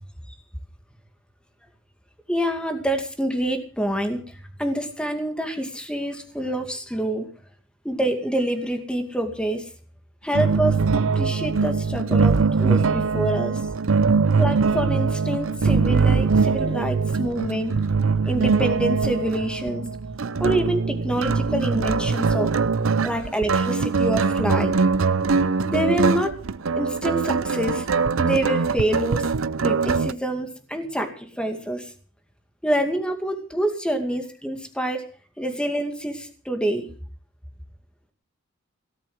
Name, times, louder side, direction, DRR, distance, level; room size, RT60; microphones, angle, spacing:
voice 1, 2.3-4.2 4.6-7.3 7.8-9.7 10.2-10.8 11.1-13.6 14.4-17.7 18.3-19.9 20.4-22.5 23.0-24.7 25.7-26.3 26.8-27.9 28.2-29.3 29.6-31.9 32.6-35.1 35.4-36.9, right 1 dB, 5° left, 5 dB, 2.3 m, -26 dB
sound 1, 10.3-30.1, right 4 dB, 75° right, 0.6 m, -22 dB
17.5 x 7.6 x 7.9 m, 0.43 s
head